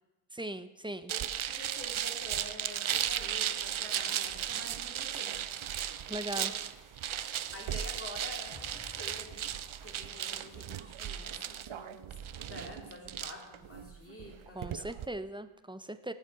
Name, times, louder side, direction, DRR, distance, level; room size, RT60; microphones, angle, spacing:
voice 1, 0.3-1.1 6.1-6.5 14.5-16.1, right 1 dB, 10° right, 11 dB, 0.5 m, -39 dB
voice 2, 1.1-5.3 6.1-6.5 7.5-9.5 9.8-14.9, left 1 dB, 25° left, 0 dB, 2.8 m, -48 dB
sound 1, 1.1-15.1, right 10 dB, 75° right, 0.6 m, -36 dB
sound 2, 5.3-10.8, right 5 dB, 40° right, 0.9 m, -59 dB
sound 3, 8.5-11.8, left 2 dB, 75° left, 4.1 m, -55 dB
18.5 x 7.3 x 4.8 m, 1.1 s
wide cardioid pair, 75°, 48 cm